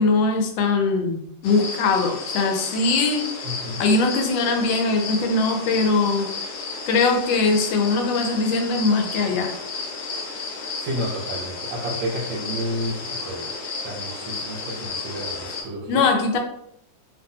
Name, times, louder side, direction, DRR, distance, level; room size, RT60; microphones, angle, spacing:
voice 1, 0.0-3.3 3.8-6.3 6.9-9.5 15.9-16.4, left 3 dB, 85° left, 4 dB, 1.3 m, -21 dB
sound 1, 1.4-15.6, left 4 dB, 70° left, 1.1 m, -32 dB
voice 2, 3.4-3.9 10.8-13.5 13.8-16.1, equal, 80° right, 0 dB, 1.5 m, -31 dB
2.8 x 2.6 x 2.7 m, 0.74 s
omnidirectional pair, 2.0 m